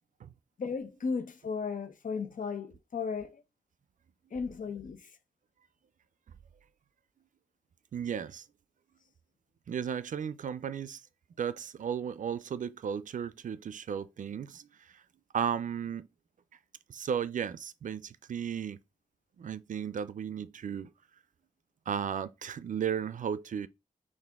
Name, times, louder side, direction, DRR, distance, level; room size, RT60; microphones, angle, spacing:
voice 1, 0.6-3.4 4.3-5.0, left 5 dB, 70° left, 0.8 m, -35 dB
voice 2, 7.9-8.4 9.7-11.0 11.4-14.9 15.3-16.1 16.9-18.8 19.4-20.9 21.9-23.7, right 8 dB, 65° right, 0.4 m, -35 dB
5.9 x 2.5 x 3.5 m
wide cardioid pair, 160°, 14 cm